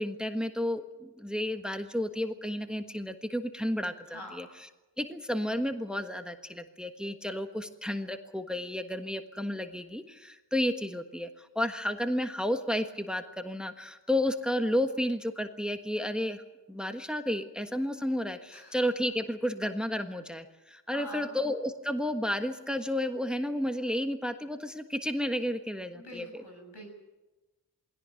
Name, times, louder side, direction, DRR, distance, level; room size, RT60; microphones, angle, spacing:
voice 1, 0.0-4.5 5.0-16.4 16.7-26.4, left 1 dB, ahead, 7 dB, 1.5 m, -32 dB
voice 2, 4.1-4.5 18.5-18.8 20.9-21.3 25.9-26.9, equal, 80° left, 3 dB, 6.7 m, -45 dB
21.0 x 17.0 x 9.1 m, 1.1 s
wide cardioid pair, 65°, 40 cm